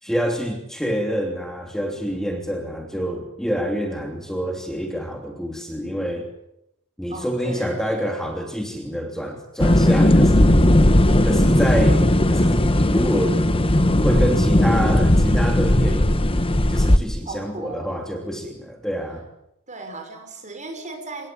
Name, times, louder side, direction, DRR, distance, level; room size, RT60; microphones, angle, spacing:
voice 1, 0.0-6.3 7.0-10.6 11.2-13.4 14.0-16.2 16.7-19.2, equal, ahead, 2 dB, 3.0 m, -27 dB
voice 2, 7.1-8.3 17.2-17.9 19.7-21.3, right 2 dB, 35° right, 6 dB, 6.4 m, -36 dB
sound 1, 9.6-17.0, left 1 dB, 25° left, 1.3 m, -17 dB
26.5 x 21.5 x 8.8 m, 0.81 s
head